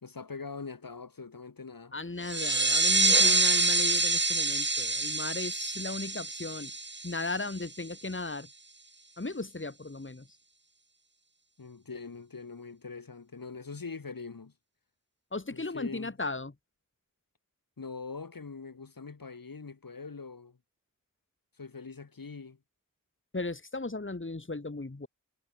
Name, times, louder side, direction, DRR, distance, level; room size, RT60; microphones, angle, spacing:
voice 1, 0.0-1.9 11.6-14.5 15.5-16.1 17.8-20.6 21.6-22.6, left 4 dB, 80° left, 2.0 m, -43 dB
voice 2, 1.9-6.7 7.0-8.5 9.2-10.3 15.3-16.5 23.3-25.1, left 3 dB, 35° left, 2.2 m, -36 dB
sound 1, 2.2-7.6, right 3 dB, 30° right, 1.3 m, -26 dB
wide cardioid pair, 45°, 34 cm